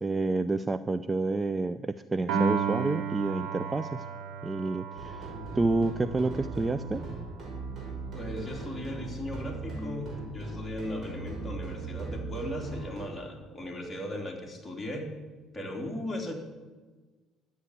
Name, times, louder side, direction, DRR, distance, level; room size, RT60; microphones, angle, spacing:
voice 1, 0.0-4.0 4.4-7.0, right 3 dB, 20° right, 13 dB, 0.5 m, -29 dB
Piano, 2.3-8.7, right 6 dB, 75° right, 2.5 m, -35 dB
sound 1, 5.0-13.1, right 2 dB, 35° right, 5.5 m, -38 dB
voice 2, 8.1-15.1 15.5-16.3, left 1 dB, 15° left, -1 dB, 3.5 m, -37 dB
12.0 x 8.7 x 8.2 m, 1.3 s
cardioid pair, 90°, 0 cm